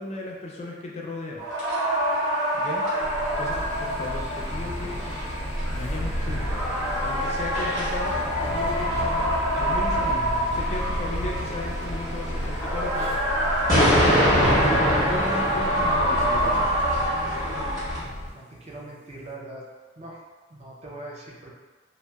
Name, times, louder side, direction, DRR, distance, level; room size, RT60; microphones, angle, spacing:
voice 1, 0.0-1.8 2.5-2.9 3.4-5.0 5.7-9.0 9.6-13.1 13.7-14.5 15.1-16.7, left 2 dB, 35° left, -2 dB, 0.3 m, -36 dB
sound 1, 1.4-18.0, equal, 20° right, 1.3 m, -25 dB
sound 2, 3.0-18.3, equal, 90° left, 0.5 m, -32 dB
voice 2, 18.0-19.6 20.0-20.2 20.5-21.5, right 2 dB, 35° right, -3 dB, 0.4 m, -41 dB
2.7 x 2.0 x 2.2 m, 1.4 s
head